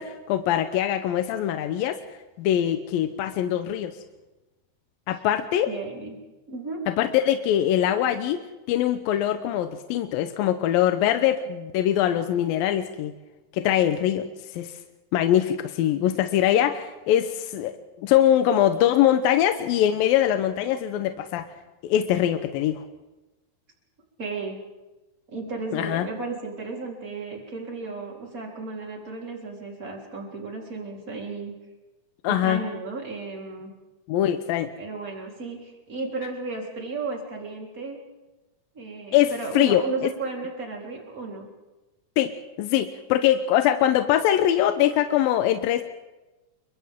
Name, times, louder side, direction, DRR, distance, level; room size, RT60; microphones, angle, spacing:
voice 1, 0.0-2.0 2.4-4.0 5.1-5.7 6.9-8.4 8.7-13.1 13.5-14.3 14.5-14.7 15.1-21.5 21.8-22.9 25.7-26.1 32.2-32.6 34.1-34.7 39.1-40.1 42.2-45.8, left 11 dB, 80° left, 8 dB, 2.5 m, -23 dB
voice 2, 5.7-6.2 6.5-6.8 24.2-24.6 25.3-31.5 32.3-33.7 34.8-38.0 38.7-41.5, right 3 dB, 20° right, -1 dB, 3.9 m, -34 dB
29.0 x 24.5 x 3.7 m, 1.1 s
omnidirectional pair, 4.3 m